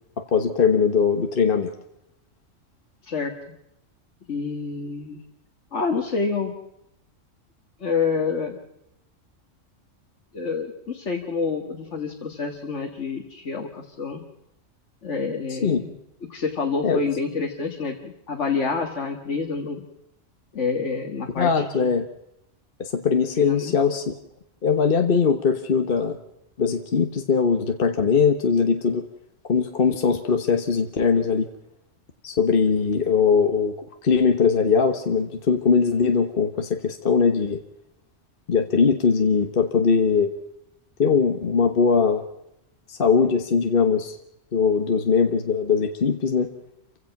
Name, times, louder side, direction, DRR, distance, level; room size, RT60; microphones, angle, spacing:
voice 1, 0.3-1.7 15.6-15.8 16.8-17.0 21.4-22.1 22.8-24.1 24.6-26.2 26.6-29.0 29.5-31.5 32.2-33.7 34.0-37.6 38.5-40.3 41.0-42.2 42.9-44.2 44.5-46.5, left 5 dB, 45° left, 6 dB, 1.4 m, -21 dB
voice 2, 4.3-5.2 5.7-6.5 7.8-8.6 10.3-14.2 15.0-16.0 16.3-19.8 20.5-21.9 23.4-23.7, left 5 dB, 65° left, 1 dB, 2.0 m, -28 dB
28.5 x 16.0 x 5.9 m, 0.82 s
omnidirectional pair, 1.3 m